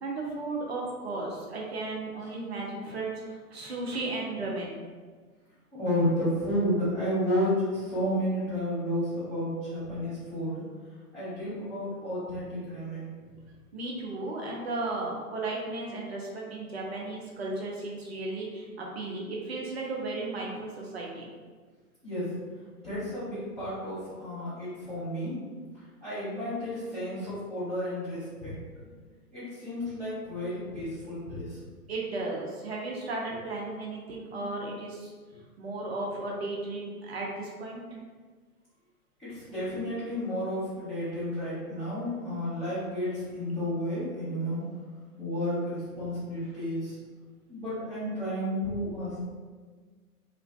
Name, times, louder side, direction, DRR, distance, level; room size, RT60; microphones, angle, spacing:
voice 1, 0.0-4.8 13.7-21.3 31.9-35.1 35.6-38.0, right 2 dB, 45° right, -2 dB, 0.7 m, -35 dB
voice 2, 5.7-10.7 11.1-13.4 22.0-22.4 22.8-25.4 26.0-28.6 28.8-28.9 29.3-31.6 39.2-44.7 45.2-47.0 47.5-49.2, equal, ahead, -22 dB, 0.5 m, -32 dB
3.1 x 2.9 x 2.7 m, 1.5 s
figure-of-eight pair, 120°, 47 cm